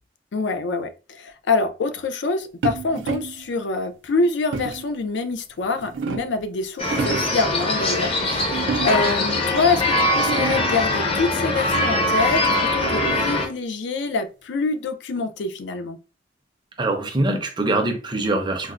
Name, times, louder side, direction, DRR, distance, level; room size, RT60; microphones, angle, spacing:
voice 1, 0.3-16.0, left 3 dB, 75° left, 0.4 m, -25 dB
sound 1, 2.6-3.4 4.5-5.0 5.6-6.4 6.8-7.4 8.5-9.2 9.8-9.9 10.1-10.9 12.2-13.4, right 5 dB, 90° right, 0.4 m, -30 dB
sound 2, 6.8-13.5, left 2 dB, 30° left, 0.6 m, -22 dB
voice 2, 16.8-18.7, right 2 dB, 25° right, 0.5 m, -23 dB
4.0 x 2.1 x 2.4 m
head